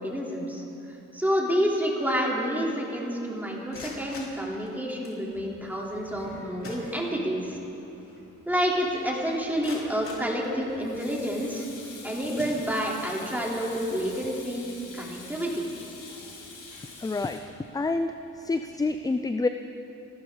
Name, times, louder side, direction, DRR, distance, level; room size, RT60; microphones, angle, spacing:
voice 1, 0.0-7.6 8.5-11.7 12.0-15.7, equal, 5° right, -3 dB, 3.6 m, -29 dB
sound 1, 3.7-5.2 6.2-6.3 6.6-7.5 7.9-8.0 8.5-8.6 9.2-11.0 11.7-11.9 12.3-13.2, left 2 dB, 45° left, 3.9 m, -44 dB
Sink (filling or washing), 5.2-18.9, left 3 dB, 85° left, 5.0 m, -48 dB
voice 2, 17.0-17.4 17.7-19.5, left 3 dB, 10° left, 8 dB, 0.5 m, -28 dB
29.0 x 12.5 x 4.0 m, 2.9 s
cardioid pair, 90°, 30 cm